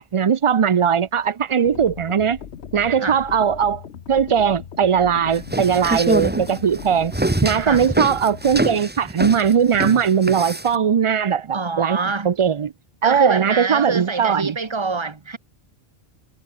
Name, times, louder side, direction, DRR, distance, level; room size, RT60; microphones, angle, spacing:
voice 1, 0.0-2.4 2.7-3.8 4.1-7.1 7.4-12.0 12.2-12.7 13.0-14.6, right 7 dB, 45° right, 0.4 m, -19 dB
sound 1, 1.6-8.7, left 8 dB, 90° left, 1.3 m, -38 dB
sound 2, 5.3-10.8, right 2 dB, 10° right, 0.7 m, -24 dB
voice 2, 11.5-12.3 13.0-15.4, right 4 dB, 25° right, 1.0 m, -25 dB
omnidirectional pair, 1.1 m